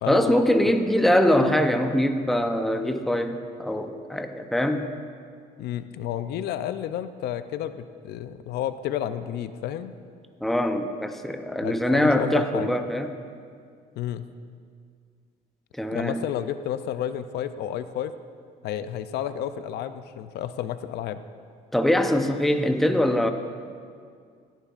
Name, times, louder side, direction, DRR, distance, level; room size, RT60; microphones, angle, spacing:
voice 1, 0.1-4.9 10.4-13.1 15.7-16.2 21.7-23.3, left 1 dB, ahead, 6 dB, 0.6 m, -23 dB
voice 2, 5.6-10.0 11.6-12.7 14.0-14.2 15.9-18.1 18.6-21.2, left 10 dB, 75° left, 11 dB, 0.4 m, -31 dB
17.0 x 10.5 x 2.5 m, 2.2 s
cardioid pair, 110°, 17 cm